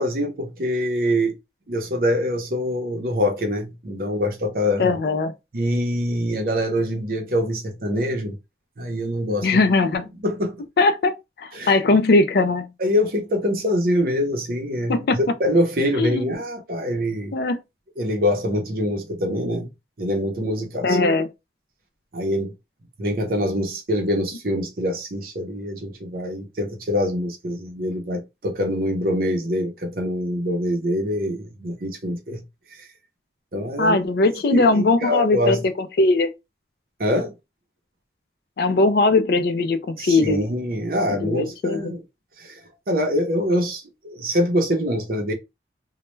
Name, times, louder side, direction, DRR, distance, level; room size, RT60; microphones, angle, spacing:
voice 1, 0.0-1.4 1.7-4.9 5.5-8.4 8.8-9.5 10.2-10.6 11.5-11.7 12.8-17.4 18.0-19.7 20.0-21.0 22.1-22.5 23.0-32.4 32.7-32.9 33.5-33.9 34.5-35.6 37.0-37.3 40.0-42.0 42.4-42.6 42.9-43.8 44.1-45.3, equal, 55° right, 0.7 m, -24 dB
voice 2, 4.8-5.3 9.4-10.1 10.8-12.7 14.9-15.2 16.0-16.2 17.3-17.6 20.8-21.3 33.8-35.6 36.0-36.3 38.6-40.4 41.1-41.8, left 3 dB, 55° left, 0.4 m, -19 dB
2.2 x 2.1 x 3.0 m
head